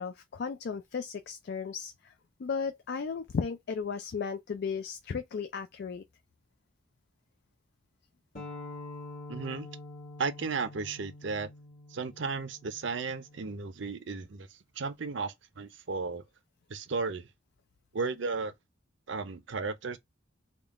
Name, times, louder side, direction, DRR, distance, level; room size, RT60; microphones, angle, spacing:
voice 1, 0.0-2.1 2.4-6.0, left 5 dB, 55° left, 0.4 m, -35 dB
sound 1, 8.4-13.6, left 2 dB, 35° left, 1.1 m, -46 dB
voice 2, 9.3-9.7 10.2-11.5 11.9-14.5 14.8-16.2 16.7-17.3 17.9-18.5 19.1-20.0, right 4 dB, 65° right, 0.6 m, -34 dB
3.6 x 2.3 x 3.6 m
head